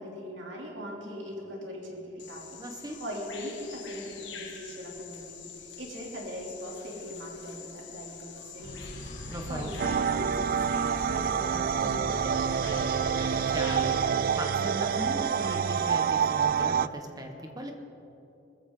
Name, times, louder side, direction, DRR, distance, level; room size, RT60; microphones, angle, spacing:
voice 1, 0.0-2.6 3.0-9.0 9.5-13.1, equal, 90° right, -2 dB, 3.3 m, -40 dB
Bird vocalization bird call bird song, 2.2-15.9, left 7 dB, 85° left, 1.8 m, -46 dB
voice 2, 2.6-3.0 9.3-9.7 13.5-17.7, right 1 dB, 20° right, 3 dB, 1.5 m, -38 dB
sound 1, 8.6-13.9, equal, 45° left, 2.3 m, -41 dB
sound 2, 9.8-16.9, right 7 dB, 50° right, 0.3 m, -27 dB
20.0 x 14.5 x 4.0 m, 2.9 s
head